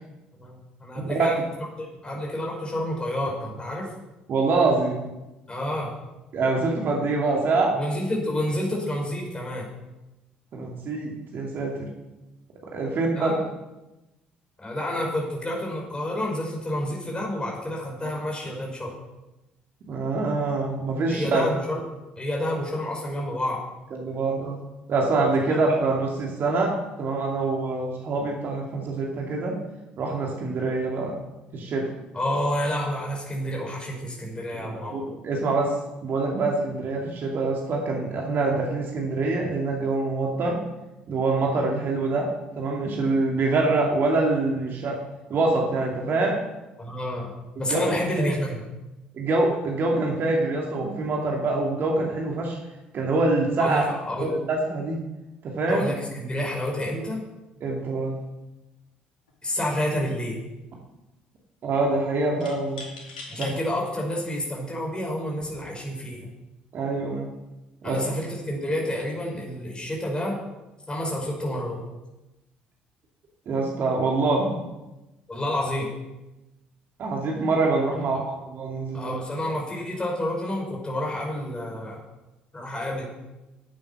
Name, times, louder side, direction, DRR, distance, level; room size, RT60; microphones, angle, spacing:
voice 1, 0.3-3.9 5.5-5.9 7.8-9.7 13.1-13.4 14.6-18.9 21.1-21.8 22.2-23.6 25.5-25.6 32.1-34.9 46.8-47.3 47.6-48.6 53.6-54.3 55.7-57.2 59.4-60.4 63.3-66.2 67.8-70.4 70.9-71.8 75.3-75.9 78.9-82.0 82.5-83.0, left 1 dB, 20° left, -2 dB, 5.2 m, -29 dB
voice 2, 4.3-5.1 6.3-7.7 10.5-11.9 12.6-13.3 19.9-21.4 23.9-24.6 24.9-29.5 30.0-31.1 31.5-31.8 34.5-35.7 36.0-40.6 41.1-42.3 42.6-45.0 45.3-46.4 47.6-48.3 49.1-52.6 52.9-53.8 54.2-55.0 55.4-55.8 57.6-58.2 61.6-62.8 63.4-63.5 66.7-67.3 67.8-68.0 73.5-74.6 77.0-79.1, right 3 dB, 45° right, -1 dB, 2.6 m, -25 dB
sound 1, 59.3-59.5 59.8-60.5 62.4-63.5 64.2-64.3 65.2-65.6, left 3 dB, 75° left, 2.3 m, -41 dB
13.0 x 9.0 x 5.9 m, 1.0 s
figure-of-eight pair, 50°, 5 cm